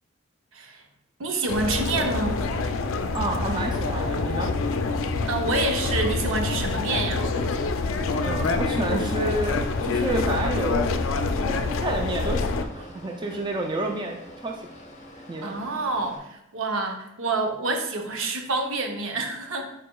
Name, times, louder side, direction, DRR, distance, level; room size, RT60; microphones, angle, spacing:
voice 1, 0.5-0.8 1.2-2.4 5.2-7.2 15.4-19.7, right 3 dB, 85° right, 3 dB, 0.7 m, -27 dB
sound 1, 1.5-12.6, left 3 dB, 80° left, 0.4 m, -26 dB
voice 2, 3.1-4.5 8.2-11.0 11.4-14.2 14.4-14.6 15.3-15.5, right 2 dB, 20° right, 2 dB, 0.4 m, -29 dB
sound 2, 6.8-16.2, left 1 dB, 35° left, 0.7 m, -46 dB
4.8 x 4.8 x 2.3 m, 0.84 s
head